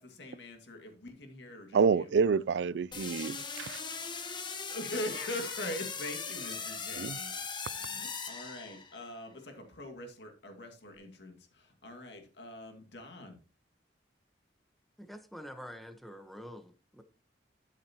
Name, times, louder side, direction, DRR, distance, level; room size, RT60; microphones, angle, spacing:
voice 1, 0.0-2.1 4.7-7.3 7.7-13.4, left 1 dB, 70° left, 2.1 m, -42 dB
voice 2, 1.7-3.8 7.0-7.2, right 5 dB, 75° right, 0.4 m, -28 dB
sound 1, 2.9-9.1, left 5 dB, 25° left, 1.2 m, -39 dB
voice 3, 15.0-17.0, equal, ahead, 1.0 m, -47 dB
13.0 x 7.4 x 2.9 m
head